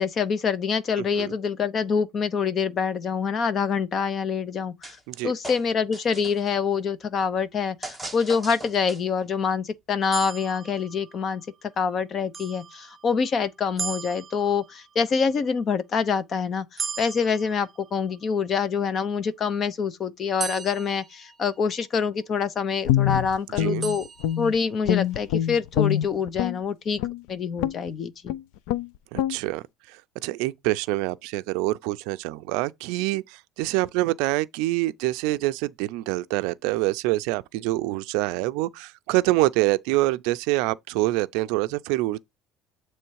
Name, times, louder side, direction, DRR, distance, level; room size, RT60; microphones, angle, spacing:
voice 1, 0.0-5.0 5.2-11.4 11.8-24.1 24.4-27.0 27.3-28.3, left 6 dB, 35° left, 0.6 m, -26 dB
sound 1, 4.8-5.2 5.4-6.5 7.8-9.2, right 1 dB, ahead, 0.9 m, -39 dB
sound 2, 10.1-11.5 12.3-13.3 13.8-15.0 16.8-18.3 20.4-22.0 23.8-25.0, right 6 dB, 25° right, 0.6 m, -37 dB
Guitar, 22.9-24.6 24.9-26.6 27.0-27.2 27.6-27.9 28.3-28.4 28.7-28.9 29.2-29.4, left 12 dB, 80° left, 0.4 m, -24 dB
voice 2, 29.1-29.6 30.2-42.2, right 19 dB, 80° right, 0.4 m, -26 dB
7.8 x 3.1 x 4.6 m
cardioid pair, 145°, 0 cm